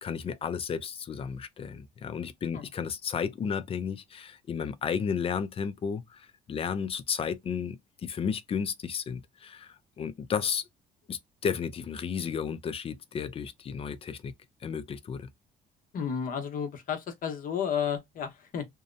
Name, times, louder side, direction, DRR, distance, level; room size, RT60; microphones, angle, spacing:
voice 1, 0.0-10.6 11.1-14.3 14.6-15.3, left 7 dB, 35° left, 0.4 m, -33 dB
voice 2, 15.9-18.7, left 7 dB, 55° left, 0.8 m, -32 dB
2.7 x 2.0 x 2.5 m
cardioid pair, 110°, 17 cm